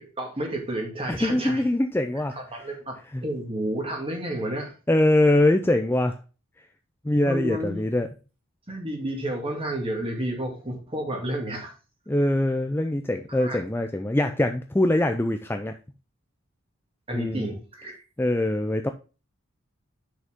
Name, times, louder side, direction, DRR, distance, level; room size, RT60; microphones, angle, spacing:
voice 1, 0.0-1.6 2.3-4.7 7.3-7.8 8.7-11.7 13.3-13.6 17.1-17.9, right 1 dB, 25° right, 2 dB, 2.3 m, -31 dB
voice 2, 1.2-2.3 3.1-3.2 4.9-6.1 7.0-8.1 12.1-15.7 17.1-17.5 18.2-18.9, left 1 dB, 10° left, 6 dB, 0.4 m, -23 dB
8.0 x 6.2 x 3.6 m, 0.33 s
head